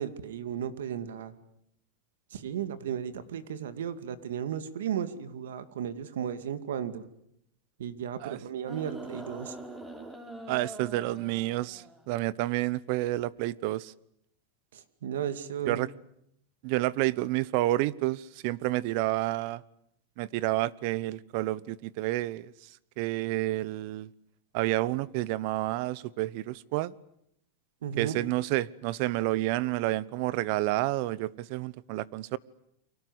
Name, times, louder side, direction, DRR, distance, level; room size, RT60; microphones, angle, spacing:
voice 1, 0.0-1.3 2.3-7.1 7.8-9.6 14.7-15.8 27.8-28.2, right 9 dB, 90° right, 2.4 m, -35 dB
sound 1, 8.7-12.1 13.2-13.3, right 1 dB, 10° right, 5.8 m, -44 dB
voice 2, 10.5-13.9 15.7-15.9 16.6-19.6 20.2-22.5 23.0-24.1 24.5-26.9 28.0-32.4, right 17 dB, 55° right, 1.0 m, -29 dB
29.5 x 24.0 x 8.1 m
supercardioid pair, 135°, 0 cm